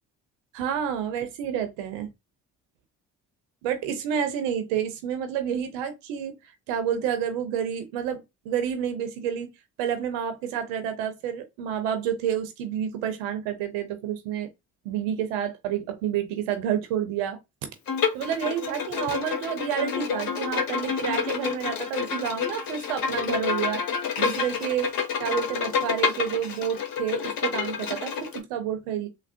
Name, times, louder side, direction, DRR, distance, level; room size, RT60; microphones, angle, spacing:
voice 1, 0.5-2.1 3.6-9.5 9.8-14.5 14.8-17.4 18.1-23.8 24.2-24.9 25.2-29.1, right 9 dB, 75° right, 0.6 m, -29 dB
Bowed string instrument, 17.9-28.4, left 7 dB, 55° left, 0.9 m, -29 dB
3.5 x 2.0 x 2.5 m
hypercardioid pair, 50°, 42 cm